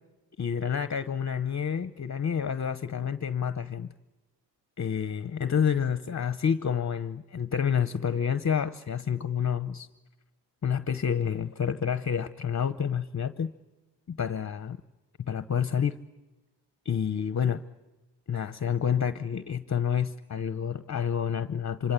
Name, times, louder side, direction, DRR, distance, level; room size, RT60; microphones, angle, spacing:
voice 1, 0.4-3.9 4.8-9.9 10.6-13.5 14.1-14.8 15.2-16.0 16.8-17.6 18.3-21.9, left 7 dB, 40° left, 12 dB, 0.9 m, -29 dB
27.0 x 26.0 x 8.2 m, 1.0 s
wide cardioid pair, 150°, 43 cm